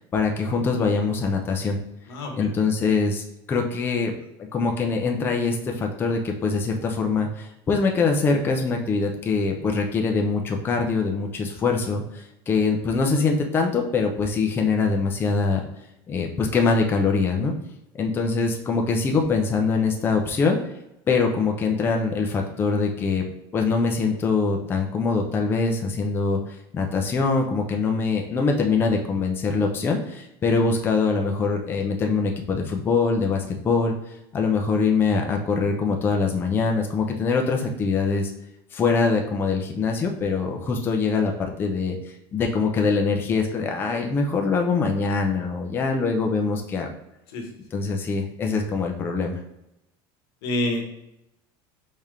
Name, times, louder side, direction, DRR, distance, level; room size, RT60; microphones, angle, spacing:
voice 1, 0.0-1.8 2.4-4.1 4.4-15.6 16.1-17.5 18.0-20.6 21.1-23.2 23.5-26.4 26.7-33.9 34.3-38.3 38.7-46.9 47.7-49.3, left 4 dB, 20° left, 2 dB, 0.5 m, -23 dB
voice 2, 2.1-2.5 47.3-47.5 50.4-50.8, left 1 dB, 90° left, 2 dB, 1.3 m, -27 dB
4.2 x 3.5 x 3.6 m, 0.86 s
cardioid pair, 165°, 12 cm